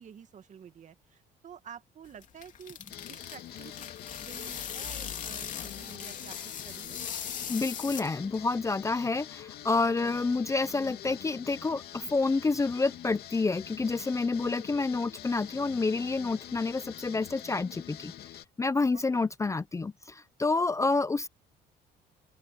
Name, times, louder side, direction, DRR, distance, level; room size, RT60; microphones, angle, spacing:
voice 1, 0.0-2.8 3.1-3.9 4.2-7.0 10.0-10.2 14.4-14.6 18.9-19.2 20.7-20.9, right 8 dB, 45° right, 2.1 m, -50 dB
sound 1, 2.0-8.4, left 8 dB, 50° left, 2.9 m, -40 dB
sound 2, 2.9-18.5, left 11 dB, 65° left, 3.0 m, -45 dB
voice 2, 7.5-18.1 18.6-21.3, left 3 dB, 20° left, 0.7 m, -29 dB
open air
cardioid pair, 110°, 17 cm